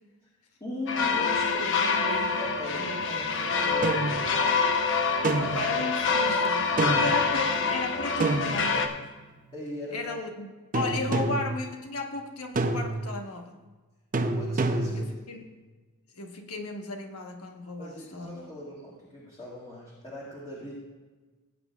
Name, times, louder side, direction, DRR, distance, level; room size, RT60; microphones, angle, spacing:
voice 1, 0.6-5.8 6.7-7.8 9.5-10.2 10.9-11.1 14.3-15.2 17.8-20.7, left 1 dB, 20° left, -7 dB, 2.1 m, -40 dB
sound 1, 0.9-8.9, left 4 dB, 60° left, 0.9 m, -26 dB
sound 2, 3.8-4.2 5.2-5.8 6.8-7.2 8.2-9.1 10.7-11.6 12.6-13.1 14.1-15.1, right 2 dB, 40° right, 0.7 m, -27 dB
voice 2, 5.3-8.9 9.9-10.5 10.7-13.5 14.9-15.4 16.1-18.5, left 3 dB, 80° left, 4 dB, 1.2 m, -35 dB
19.0 x 8.9 x 2.4 m, 1.3 s
head